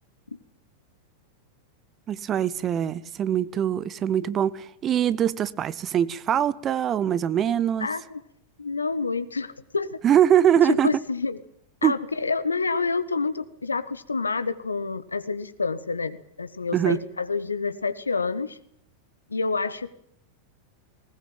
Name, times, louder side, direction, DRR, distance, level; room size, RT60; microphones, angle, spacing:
voice 1, 2.1-7.9 10.0-10.9 11.8-11.9 16.7-17.0, right 10 dB, 30° right, 0.9 m, -23 dB
voice 2, 7.8-8.2 8.6-9.9 10.6-11.4 11.8-18.6 19.3-19.9, left 4 dB, 75° left, 1.4 m, -28 dB
20.0 x 19.5 x 9.1 m
figure-of-eight pair, 90°, 0 cm